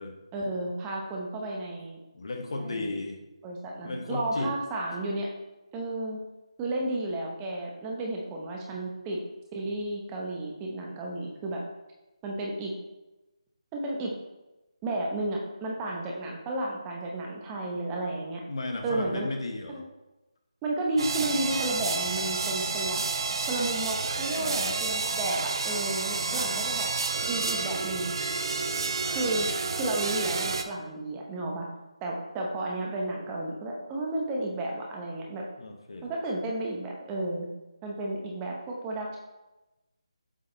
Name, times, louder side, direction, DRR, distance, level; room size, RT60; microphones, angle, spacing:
voice 1, 0.3-2.0 2.6-2.9 3.4-5.3 5.7-6.2 6.6-9.2 9.5-11.6 12.2-12.7 13.7-14.1 14.8-18.4 18.8-19.3 19.7-19.8 20.6-23.0 23.4-26.9 27.3-28.1 29.1-29.5 29.7-31.7 32.0-35.4 36.0-37.5 37.8-39.2, right 2 dB, 15° right, -1 dB, 0.8 m, -32 dB
voice 2, 2.1-3.2 3.8-4.5 18.5-19.8 24.3-24.9 26.3-26.7 35.6-36.1, left 2 dB, 55° left, 4 dB, 1.0 m, -35 dB
sound 1, 21.0-30.6, right 4 dB, 45° right, 0.5 m, -30 dB
7.8 x 4.0 x 3.8 m, 1.0 s
figure-of-eight pair, 160°, 3 cm